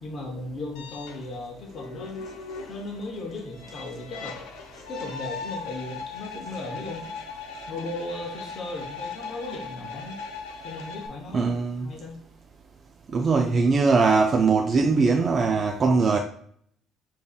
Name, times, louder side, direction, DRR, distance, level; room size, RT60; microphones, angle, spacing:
voice 1, 0.0-2.3 2.7-4.5 4.9-7.1 7.7-10.2 10.6-11.5 11.8-12.2, left 2 dB, 40° left, 0.8 m, -36 dB
sound 1, 0.8-11.1, left 4 dB, 90° left, 0.7 m, -39 dB
voice 2, 11.3-11.9 13.1-16.2, right 4 dB, 35° right, 0.4 m, -21 dB
6.9 x 2.8 x 2.3 m
cardioid pair, 120°, 0 cm